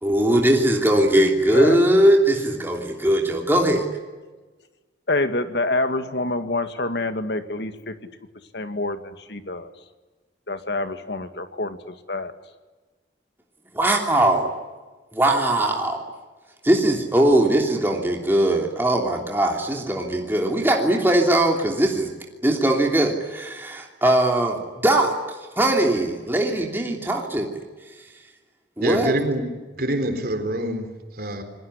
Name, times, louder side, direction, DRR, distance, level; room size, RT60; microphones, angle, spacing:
voice 1, 0.0-3.9 13.7-14.5 15.1-16.0 16.6-22.1 22.4-25.2 25.6-27.6 28.8-29.1, right 1 dB, 10° right, 1 dB, 3.0 m, -20 dB
voice 2, 5.1-7.9 8.5-9.7 10.5-12.3, left 2 dB, 65° left, 8 dB, 2.2 m, -27 dB
voice 3, 28.8-29.5 29.7-30.9 31.1-31.4, right 1 dB, 55° right, 7 dB, 4.1 m, -25 dB
28.5 x 21.0 x 9.9 m, 1.3 s
head